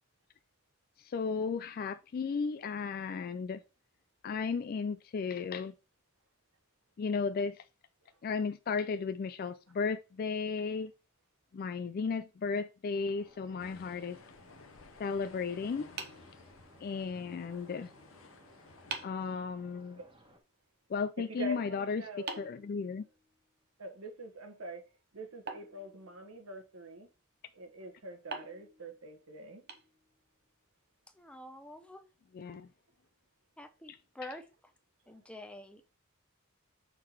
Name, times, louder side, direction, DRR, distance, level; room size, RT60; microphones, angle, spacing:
voice 1, 1.0-3.6 4.2-5.7 7.0-7.6 8.2-10.9 11.5-14.2 15.0-15.9 16.8-17.9 19.0-20.0 20.9-23.0 32.3-32.7 33.9-34.4, left 5 dB, 45° left, 0.3 m, -35 dB
sound 1, 12.9-20.4, right 1 dB, 25° right, 1.3 m, -61 dB
sound 2, 13.6-19.1, left 4 dB, 70° left, 0.9 m, -56 dB
sound 3, 16.0-17.1 18.3-18.4 18.9-19.3 22.3-23.5 25.5-26.6 28.3-30.4, right 4 dB, 50° right, 0.9 m, -45 dB
voice 2, 21.3-22.5 23.8-24.8 25.1-27.1 27.5-29.6, right 1 dB, 80° right, 1.4 m, -44 dB
voice 3, 31.1-32.0 33.6-34.5 35.1-35.9, left 1 dB, 5° left, 0.8 m, -47 dB
6.4 x 3.8 x 4.5 m
head